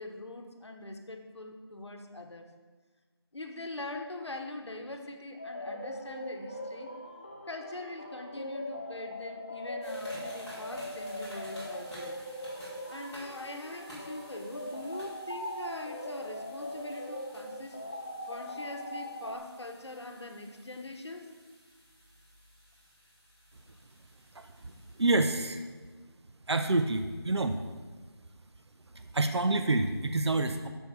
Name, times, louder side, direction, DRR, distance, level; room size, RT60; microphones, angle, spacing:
voice 1, 0.0-2.5 3.3-6.9 7.5-12.2 12.9-17.8 18.3-21.3, left 2 dB, 90° left, 5 dB, 1.1 m, -42 dB
sound 1, 5.4-19.4, left 1 dB, 20° left, 0.4 m, -40 dB
sound 2, 9.8-25.1, equal, ahead, 2.4 m, -54 dB
voice 2, 25.0-25.6 26.5-27.6 28.9-30.7, right 2 dB, 80° right, 7 dB, 0.6 m, -27 dB
7.2 x 4.6 x 6.0 m, 1.4 s
figure-of-eight pair, 170°, 14 cm